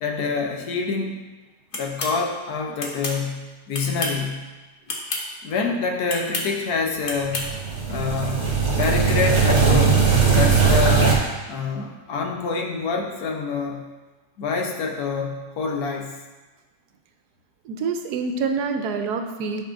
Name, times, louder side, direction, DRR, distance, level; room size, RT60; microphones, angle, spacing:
voice 1, 0.0-1.3 1.7-4.4 5.4-7.6 7.9-10.0 10.3-11.2 11.5-13.9 14.4-16.2, left 4 dB, 70° left, 2 dB, 1.3 m, -26 dB
sound 1, 1.7-2.2 2.8-3.2 3.7-4.2 4.9-5.2 6.1-6.5 7.1-7.5, left 2 dB, 40° left, 0.9 m, -29 dB
sound 2, 7.3-11.1, right 5 dB, 45° right, 1.9 m, -19 dB
voice 2, 17.7-19.6, right 4 dB, 80° right, 6 dB, 1.2 m, -26 dB
10.0 x 5.3 x 2.5 m, 1.2 s
omnidirectional pair, 1.7 m